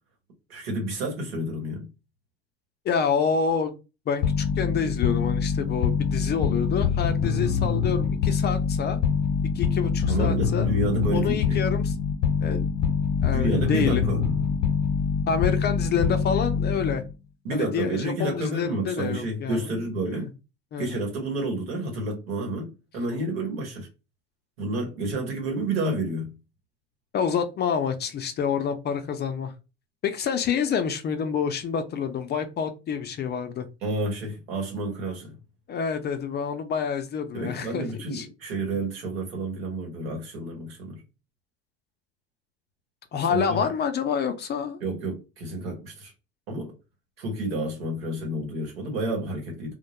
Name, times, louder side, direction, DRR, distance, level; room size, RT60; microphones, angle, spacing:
voice 1, 0.5-1.9 10.1-11.6 13.3-14.2 17.4-20.3 20.8-23.9 24.6-26.3 33.8-35.4 37.3-41.0 43.3-43.7 44.8-46.1 46.5-46.7 47.2-49.7, right 2 dB, 80° right, 1.1 m, -30 dB
voice 2, 2.8-3.7 4.1-9.0 9.5-10.7 11.1-11.9 12.4-12.9 13.2-14.0 15.3-17.0 17.5-20.3 20.7-20.9 27.1-29.5 30.0-33.7 35.7-37.8 38.1-38.3 43.1-44.8, left 6 dB, 35° left, 0.5 m, -27 dB
sound 1, 4.2-17.1, left 6 dB, 55° left, 0.8 m, -25 dB
2.1 x 2.1 x 2.8 m
hypercardioid pair, 65°, 30 cm